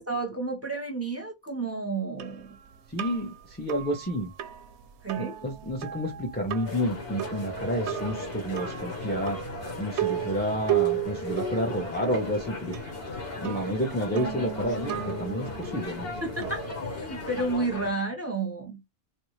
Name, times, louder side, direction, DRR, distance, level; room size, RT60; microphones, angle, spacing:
voice 1, 0.0-2.6 5.0-5.4 16.2-18.8, right 3 dB, 15° right, 1.0 m, -31 dB
sound 1, 2.2-17.5, right 11 dB, 70° right, 0.8 m, -35 dB
voice 2, 2.9-4.3 5.2-9.4 9.8-12.8 13.4-16.1, equal, 10° left, 0.7 m, -30 dB
sound 2, 6.7-17.9, left 3 dB, 55° left, 1.3 m, -37 dB
3.1 x 2.7 x 3.1 m
omnidirectional pair, 1.2 m